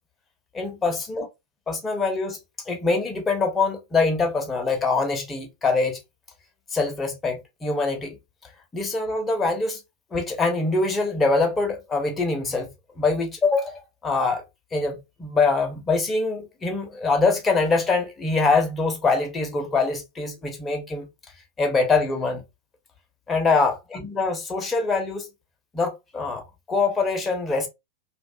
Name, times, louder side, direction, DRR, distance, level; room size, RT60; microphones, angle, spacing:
voice 1, 0.5-1.3 1.7-2.4 2.7-6.0 6.7-8.2 8.7-9.8 10.1-12.7 13.0-14.4 14.7-21.1 21.6-22.4 23.3-25.3 25.7-27.7, left 3 dB, 15° left, 0.6 m, -24 dB
2.3 x 2.3 x 2.3 m
figure-of-eight pair, 90°, 0 cm